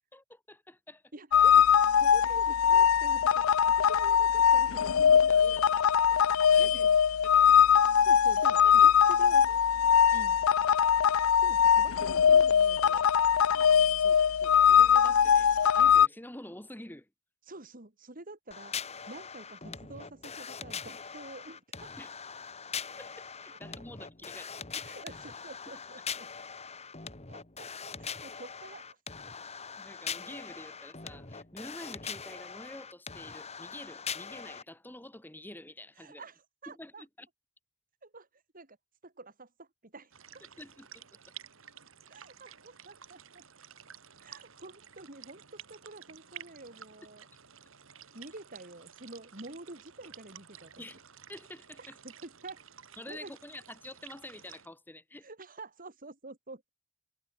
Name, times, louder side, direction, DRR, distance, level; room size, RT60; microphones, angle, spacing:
voice 1, 0.1-1.0 5.3-6.9 7.3-7.9 8.6-8.9 9.5-9.6 10.1-10.2 13.5-17.1 22.0-22.1 23.0-24.9 29.8-36.2 36.7-37.3 40.4-41.0 50.8-51.0 51.3-52.0 53.0-55.3, left 1 dB, 10° left, 1.5 m, -48 dB
voice 2, 1.1-5.6 6.6-7.0 8.0-9.5 10.1-10.4 11.4-13.0 17.5-18.8 19.1-21.9 24.8-26.3 27.3-29.0 36.0-37.0 38.0-38.3 38.5-38.8 39.0-40.4 42.1-43.4 44.2-47.3 48.1-50.7 51.8-52.6 53.1-53.3 55.2-56.7, right 2 dB, 45° right, 3.4 m, -48 dB
sound 1, 1.3-16.1, left 8 dB, 80° left, 0.5 m, -22 dB
sound 2, 18.5-34.6, left 6 dB, 30° left, 1.8 m, -42 dB
sound 3, 40.1-54.7, right 9 dB, 70° right, 2.7 m, -52 dB
head